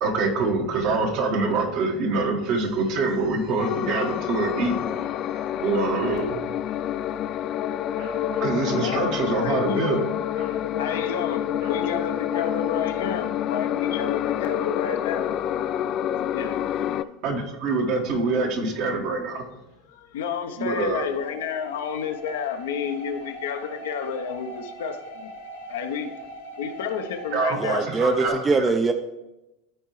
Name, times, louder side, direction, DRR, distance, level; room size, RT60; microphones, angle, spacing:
voice 1, 0.0-4.7 5.6-6.4 8.4-10.1 17.2-19.4 20.6-21.1 27.3-28.7, right 3 dB, 55° right, 1.4 m, -25 dB
sound 1, 3.6-17.0, left 11 dB, 45° left, 0.3 m, -28 dB
Bark, 8.0-9.3 10.3-10.6 10.9-11.1 11.6-11.9 12.3-12.6, right 1 dB, 80° right, 1.8 m, -43 dB
voice 2, 8.6-10.0 10.8-15.4 16.2-17.0 19.9-25.3 25.7-26.2 26.6-27.9, left 7 dB, 70° left, 0.7 m, -31 dB
sound 2, 21.0-28.3, right 1 dB, 90° left, 1.3 m, -41 dB
voice 3, 27.6-28.9, right 3 dB, 25° right, 0.5 m, -22 dB
13.0 x 4.4 x 3.1 m
hypercardioid pair, 80°, 0 cm